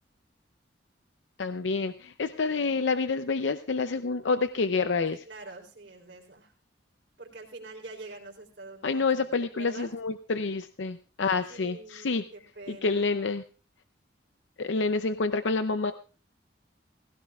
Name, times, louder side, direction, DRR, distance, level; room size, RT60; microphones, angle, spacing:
voice 1, 1.4-5.2 8.8-12.2 12.7-13.4 14.6-15.9, left 4 dB, 85° left, 10 dB, 0.6 m, -28 dB
voice 2, 5.1-6.5 7.2-9.3 9.5-9.9 11.5-13.0, right 2 dB, 70° right, 0 dB, 3.9 m, -45 dB
19.5 x 16.0 x 2.4 m, 0.37 s
head